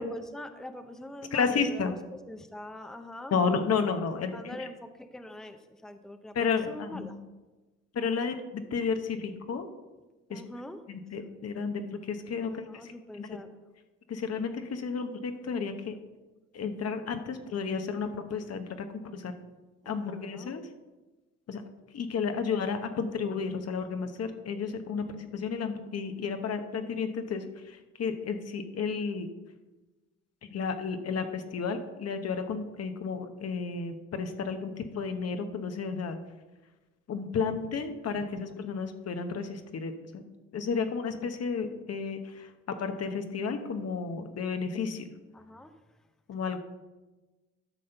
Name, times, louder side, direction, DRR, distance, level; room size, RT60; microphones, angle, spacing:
voice 1, 0.0-2.0 2.3-3.4 4.3-6.3 6.7-7.2 10.3-10.8 12.4-13.6 19.8-20.5 45.3-46.0, left 1 dB, ahead, 8 dB, 0.6 m, -44 dB
voice 2, 1.3-1.9 3.3-4.4 6.3-7.1 7.9-9.7 10.3-10.4 10.9-12.9 13.2-13.4 14.1-15.9 16.5-19.3 19.8-20.6 21.5-21.6 21.9-29.3 30.5-36.2 37.1-40.2 40.5-45.1 46.3-46.6, left 5 dB, 55° left, 7 dB, 1.0 m, -32 dB
11.5 x 4.2 x 6.7 m, 1.2 s
cardioid pair, 90°, 30 cm